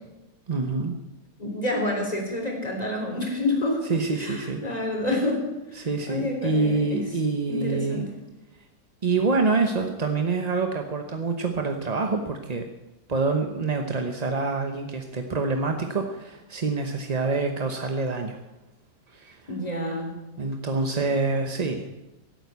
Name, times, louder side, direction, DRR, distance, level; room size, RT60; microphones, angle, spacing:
voice 1, 0.5-0.9 3.9-4.6 5.7-8.1 9.0-12.6 13.1-18.4 19.1-19.4 20.4-21.9, right 3 dB, 30° right, 5 dB, 0.8 m, -26 dB
voice 2, 1.4-3.8 4.2-7.0 7.5-8.1 19.5-20.2, left 1 dB, 20° left, 1 dB, 3.8 m, -28 dB
15.5 x 9.2 x 8.2 m, 1.0 s
omnidirectional pair, 1.8 m